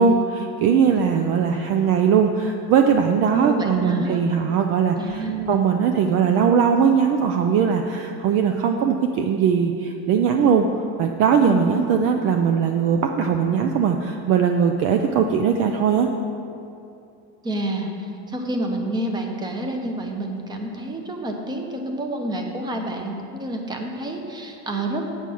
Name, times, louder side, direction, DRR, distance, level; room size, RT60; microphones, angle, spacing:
voice 1, 0.0-10.7 11.0-16.1, right 6 dB, 40° right, 5 dB, 0.4 m, -20 dB
voice 2, 3.3-4.2 5.0-5.7 11.4-11.7 17.4-17.9 18.3-25.0, right 1 dB, 10° right, 3 dB, 0.8 m, -28 dB
8.4 x 7.4 x 6.1 m, 2.6 s
cardioid pair, 160°, 34 cm